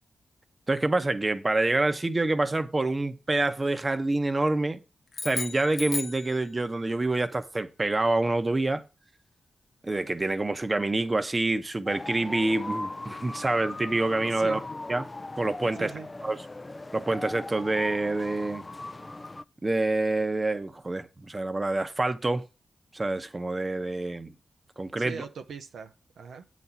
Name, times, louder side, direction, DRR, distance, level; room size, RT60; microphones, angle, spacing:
voice 1, 0.7-4.8 5.2-8.8 9.8-14.6 14.9-15.1 15.4-15.9 16.2-16.4 16.9-18.6 19.6-22.4 22.9-24.3 24.8-25.2, right 2 dB, 30° right, 0.9 m, -27 dB
sound 1, 5.1-6.9, left 4 dB, 65° left, 0.8 m, -35 dB
sound 2, 11.9-19.4, left 2 dB, 30° left, 0.4 m, -39 dB
voice 2, 14.3-14.6 15.7-16.1 25.0-26.4, right 6 dB, 90° right, 0.6 m, -40 dB
8.3 x 4.2 x 5.8 m
cardioid pair, 55°, 0 cm